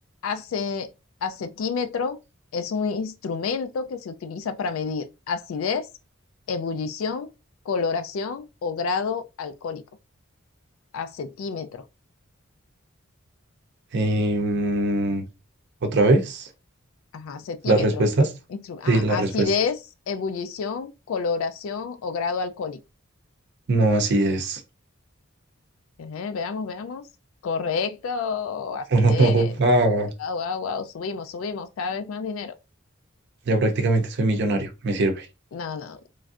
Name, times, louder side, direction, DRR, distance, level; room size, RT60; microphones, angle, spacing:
voice 1, 0.2-0.9 1.2-2.2 2.5-5.9 6.5-7.3 7.7-9.8 10.9-11.8 17.1-18.1 18.7-19.8 20.1-22.8 26.0-27.0 27.4-29.5 30.2-32.5 35.5-36.0, left 5 dB, 75° left, 0.3 m, -29 dB
voice 2, 13.9-15.2 15.8-16.5 17.7-18.3 18.9-19.5 23.7-24.6 28.9-30.1 33.5-35.3, right 2 dB, 55° right, 0.6 m, -21 dB
3.2 x 2.5 x 2.4 m
head